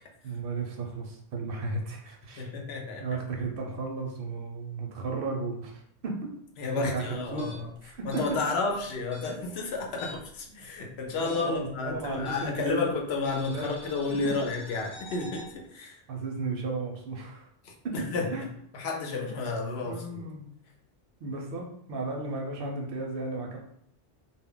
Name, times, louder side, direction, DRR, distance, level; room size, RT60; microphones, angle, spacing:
voice 1, 0.2-2.5 3.0-6.2 6.8-7.5 7.8-8.2 10.5-10.6 11.2-12.9 13.3-13.7 16.1-17.5 17.8-17.9 18.3-18.4 19.1-19.3 19.8-20.5 21.2-23.6, right 3 dB, 65° right, 0 dB, 0.7 m, -34 dB
voice 2, 2.4-3.1 6.6-7.7 8.0-16.0 17.6-18.5 18.7-20.2, left 3 dB, 70° left, 0 dB, 0.8 m, -31 dB
sound 1, 7.3-10.4 10.7-12.7 13.3-15.5, left 1 dB, 25° left, 0.4 m, -47 dB
2.2 x 2.0 x 3.6 m, 0.67 s
omnidirectional pair, 1.1 m